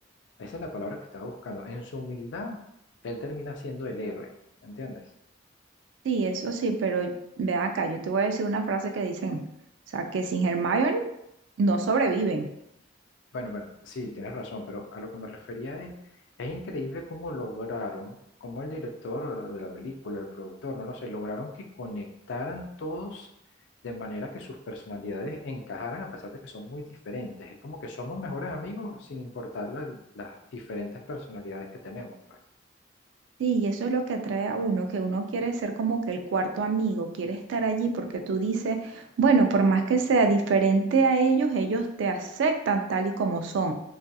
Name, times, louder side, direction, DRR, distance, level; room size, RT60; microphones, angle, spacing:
voice 1, 0.4-2.6 3.0-4.3 4.6-5.0 13.3-15.9 16.4-23.3 23.8-32.4, left 2 dB, 70° left, 3 dB, 0.4 m, -36 dB
voice 2, 6.0-7.1 7.4-9.4 9.9-11.0 11.6-12.5 33.4-43.7, right 4 dB, 75° right, 5 dB, 0.3 m, -25 dB
2.4 x 2.2 x 2.6 m, 0.79 s
head